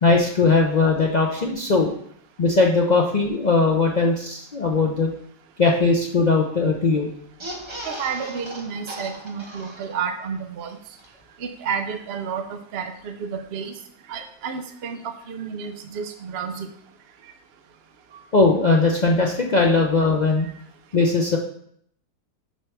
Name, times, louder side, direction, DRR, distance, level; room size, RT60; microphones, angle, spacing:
voice 1, 0.0-1.9 2.4-5.1 5.6-7.1 18.3-20.5 20.9-21.4, left 3 dB, 75° left, 0 dB, 0.4 m, -19 dB
sound 1, 7.3-10.3 10.6-10.7 10.9-11.1, right 1 dB, 25° right, 0.7 m, -37 dB
voice 2, 7.8-10.8 11.4-13.7 14.1-16.7, right 6 dB, 60° right, 6 dB, 0.6 m, -31 dB
7.1 x 3.4 x 6.0 m, 0.67 s
omnidirectional pair, 1.8 m